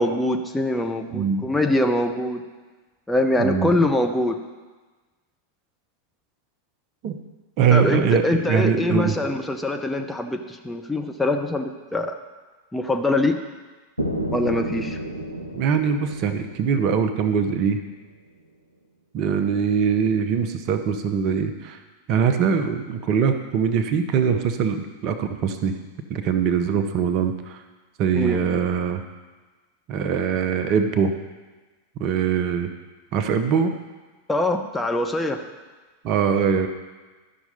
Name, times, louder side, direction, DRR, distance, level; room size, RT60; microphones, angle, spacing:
voice 1, 0.0-2.4 3.1-4.4 7.7-12.2 12.7-13.4 14.3-15.0 28.1-28.5 34.3-35.4, left 1 dB, 5° left, 4 dB, 0.6 m, -23 dB
voice 2, 1.1-1.4 3.4-3.7 7.0-7.1 7.6-9.2 15.5-17.8 19.1-21.8 22.1-25.8 26.1-27.6 28.0-29.0 29.9-31.1 32.0-32.7 33.1-33.7 36.0-36.7, right 7 dB, 40° right, 8 dB, 0.7 m, -22 dB
sound 1, 14.0-17.9, right 1 dB, 85° right, 0.9 m, -32 dB
12.5 x 5.9 x 4.1 m, 1.3 s
figure-of-eight pair, 90°, 0 cm